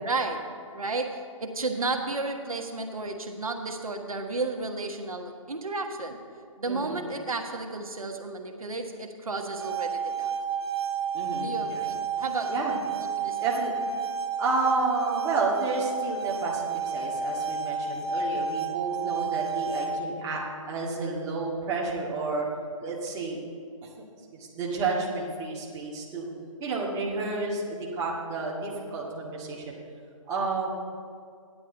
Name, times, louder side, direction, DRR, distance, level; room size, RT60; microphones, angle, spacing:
voice 1, 0.0-6.2 6.6-10.4 11.4-13.4, right 3 dB, 85° right, 4 dB, 1.3 m, -33 dB
voice 2, 6.7-7.1 11.1-11.9 12.5-12.7 13.4-13.7 14.4-22.5 22.8-23.4 24.3-26.3 26.6-29.6 30.3-30.7, right 3 dB, 20° right, -4 dB, 1.9 m, -31 dB
sound 1, 9.4-20.4, right 5 dB, 50° right, 0.8 m, -31 dB
14.5 x 10.5 x 3.9 m, 2.3 s
hypercardioid pair, 145°, 18 cm